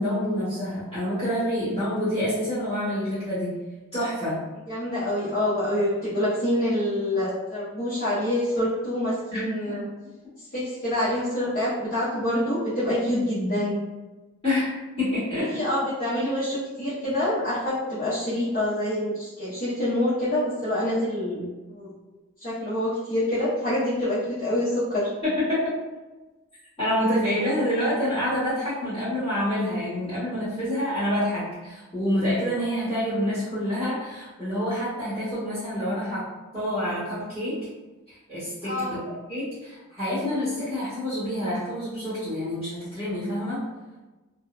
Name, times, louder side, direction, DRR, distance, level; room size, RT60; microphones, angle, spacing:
voice 1, 0.0-3.5 3.9-4.4 9.3-9.4 14.4-15.7 25.2-25.7 26.8-36.2 36.5-37.7 38.1-39.0 39.3-43.6, left 1 dB, 20° left, -14 dB, 1.2 m, -27 dB
voice 2, 4.7-9.8 10.5-13.8 15.5-21.9 22.4-25.1 38.6-39.0, left 1 dB, 40° left, -12 dB, 0.8 m, -26 dB
2.7 x 2.0 x 2.3 m, 1.2 s
head